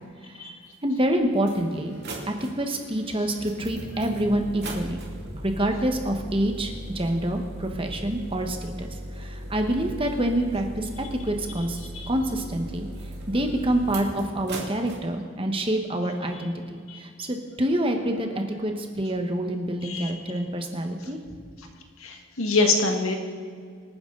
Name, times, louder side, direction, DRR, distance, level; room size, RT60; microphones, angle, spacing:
sound 1, 0.7-0.8 1.4-15.0, right 1 dB, 50° right, 2.4 m, -38 dB
voice 1, 0.8-1.9 2.3-5.0 5.3-11.8 12.1-12.9 13.3-21.2, right 1 dB, 25° right, 4 dB, 1.3 m, -27 dB
voice 2, 22.0-23.1, left 3 dB, 80° left, 3 dB, 1.9 m, -24 dB
25.5 x 9.6 x 3.9 m, 2.1 s
head